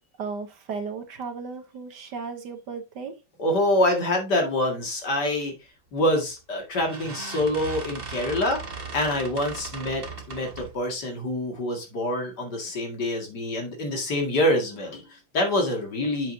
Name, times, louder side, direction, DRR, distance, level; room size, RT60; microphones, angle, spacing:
voice 1, 0.2-3.1, right 5 dB, 60° right, 7 dB, 1.5 m, -35 dB
voice 2, 3.4-5.5 5.9-8.6 8.9-16.3, left 1 dB, 55° left, 1 dB, 2.6 m, -26 dB
sound 1, 6.0-6.3 6.7-10.8, right 4 dB, 35° right, 1.1 m, -38 dB
7.5 x 7.5 x 2.7 m, 0.27 s
omnidirectional pair, 2.2 m